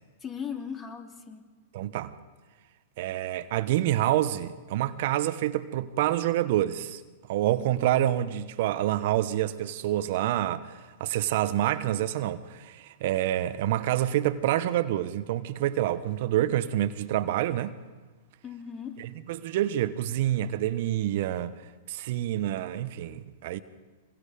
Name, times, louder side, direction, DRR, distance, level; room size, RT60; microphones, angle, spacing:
voice 1, 0.2-1.4 18.4-19.0, left 7 dB, 25° left, 3.1 m, -37 dB
voice 2, 1.7-2.1 3.0-7.0 7.3-17.8 19.0-23.6, right 13 dB, 60° right, 1.0 m, -27 dB
25.5 x 23.0 x 5.1 m
hypercardioid pair, 110°, 0 cm